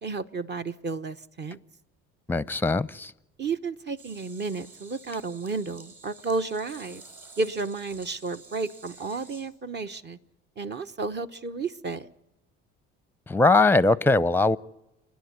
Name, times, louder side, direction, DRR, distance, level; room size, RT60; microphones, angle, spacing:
voice 1, 0.0-1.6 3.4-7.0 7.4-10.2 10.6-12.1, right 3 dB, 35° right, 8 dB, 1.1 m, -32 dB
voice 2, 2.3-3.1 13.3-14.6, left 3 dB, 5° left, 19 dB, 0.7 m, -21 dB
sound 1, 4.0-9.4, right 3 dB, 50° right, 7.5 m, -50 dB
29.0 x 10.5 x 9.6 m, 0.95 s
supercardioid pair, 70°, 29 cm